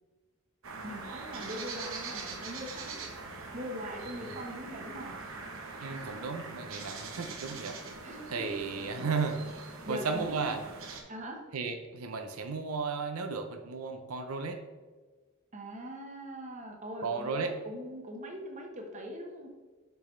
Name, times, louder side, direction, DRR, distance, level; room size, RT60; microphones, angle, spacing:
sound 1, 0.6-11.0, right 4 dB, 70° right, 1.0 m, -43 dB
voice 1, 0.8-3.1 3.5-5.1 8.0-8.7 9.8-10.6 11.1-11.4 15.5-19.5, equal, 35° right, 2 dB, 1.0 m, -41 dB
voice 2, 5.8-7.8 8.3-9.4 9.9-10.6 11.5-14.6 17.0-17.5, right 4 dB, 85° right, 6 dB, 0.6 m, -34 dB
6.9 x 5.9 x 3.2 m, 1.4 s
head